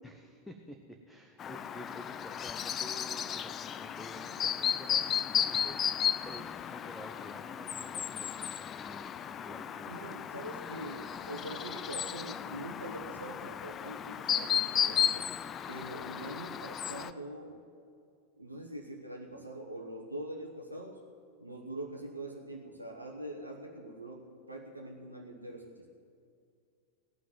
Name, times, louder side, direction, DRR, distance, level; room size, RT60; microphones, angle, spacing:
voice 1, 0.0-8.3 8.8-10.2, equal, 5° left, 5 dB, 0.9 m, -50 dB
Chirp tweet, 1.4-17.1, left 9 dB, 25° left, 0.4 m, -34 dB
voice 2, 9.9-15.3 15.7-17.6 18.4-21.0 21.4-25.9, right 1 dB, 85° right, 0 dB, 1.1 m, -43 dB
17.5 x 6.2 x 9.3 m, 2.3 s
figure-of-eight pair, 90°, 0 cm